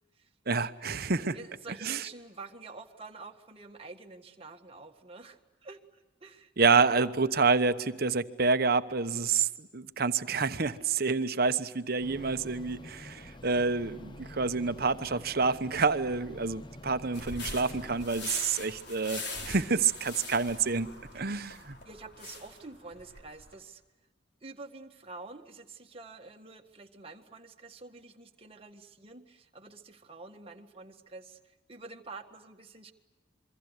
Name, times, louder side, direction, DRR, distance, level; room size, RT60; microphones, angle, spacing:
voice 1, 0.5-1.4 1.8-2.0 6.6-20.9 21.1-21.8, right 4 dB, 55° right, 11 dB, 1.0 m, -28 dB
voice 2, 1.3-6.5 6.8-6.9 21.2-21.6 21.9-23.8 24.4-32.9, right 3 dB, 30° right, 4 dB, 1.7 m, -48 dB
sound 1, 12.0-18.1, left 1 dB, 25° left, 0.8 m, -47 dB
sound 2, 17.1-23.5, left 3 dB, 60° left, 4.7 m, -42 dB
27.5 x 23.0 x 8.2 m, 1.1 s
head